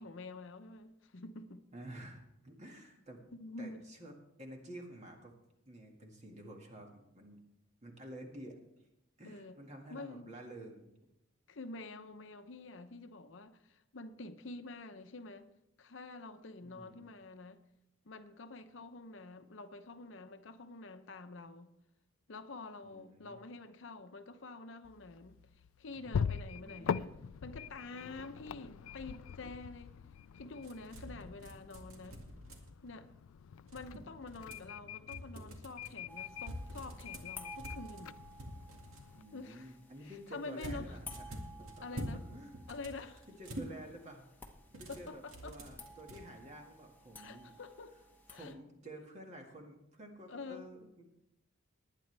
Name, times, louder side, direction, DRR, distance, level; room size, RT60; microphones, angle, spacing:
voice 1, 0.0-1.7 3.3-3.8 9.2-9.6 9.9-10.3 11.5-15.5 15.8-17.6 18.0-21.7 22.3-27.1 27.4-30.0 30.3-32.2 32.8-33.1 33.7-38.2 39.3-39.8 40.0-41.0 41.8-42.2 42.7-43.3 44.9-45.6 47.2-47.9 48.3-48.6 50.3-50.7, left 3 dB, 65° left, 0.7 m, -47 dB
voice 2, 1.7-3.2 3.6-5.3 5.7-7.4 7.8-8.6 9.2-10.9 16.6-17.1 22.8-23.4 26.6-27.2 39.1-42.0 42.3-42.5 43.4-44.3 44.8-47.5 48.3-51.0, right 1 dB, 35° right, 1.9 m, -51 dB
sound 1, 24.8-39.2, left 7 dB, 85° left, 0.4 m, -43 dB
sound 2, 30.6-32.9 33.7-34.7 35.1-35.9 36.4-39.1 40.6-42.2 42.5-43.7 44.7-46.2, equal, 90° right, 2.1 m, -46 dB
sound 3, 36.1-48.5, equal, 10° left, 1.1 m, -55 dB
20.0 x 9.1 x 3.4 m
head